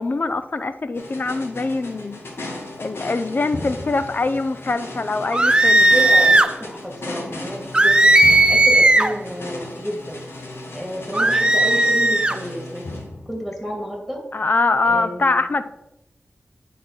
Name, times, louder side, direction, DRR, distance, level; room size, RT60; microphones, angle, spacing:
voice 1, 0.0-6.0 14.3-15.6, left 3 dB, 45° left, 12 dB, 0.6 m, -23 dB
sound 1, 0.9-13.7, left 2 dB, 75° left, 1.5 m, -35 dB
sound 2, 5.3-6.5 7.7-9.2 11.1-12.4, right 1 dB, 20° right, 0.5 m, -15 dB
voice 2, 5.9-8.2 8.5-10.2 10.7-12.9 13.2-14.2 14.8-15.5, equal, 5° left, 0 dB, 2.6 m, -30 dB
9.2 x 3.6 x 6.0 m, 0.89 s
wide cardioid pair, 90°, 4 cm